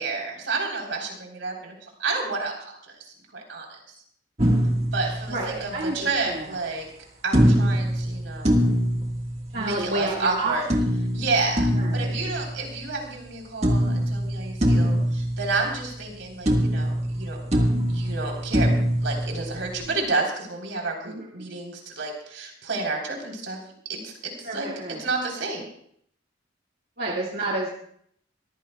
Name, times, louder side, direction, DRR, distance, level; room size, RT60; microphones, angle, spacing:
voice 1, 0.0-3.8 4.9-6.9 7.2-8.5 9.5-10.6 11.1-17.4 17.9-18.7 19.0-23.6 23.9-24.7 25.0-25.7, right 3 dB, 80° right, 0 dB, 3.9 m, -30 dB
sound 1, 4.4-5.9 7.3-9.9 10.7-13.3 13.6-16.2 16.5-19.9, equal, 35° right, 1.7 m, -24 dB
voice 2, 5.0-6.6 9.5-10.9 11.7-12.3 21.0-21.6 24.4-25.1 27.0-27.7, right 2 dB, 55° right, -3 dB, 2.0 m, -31 dB
23.5 x 15.0 x 2.3 m, 0.66 s
head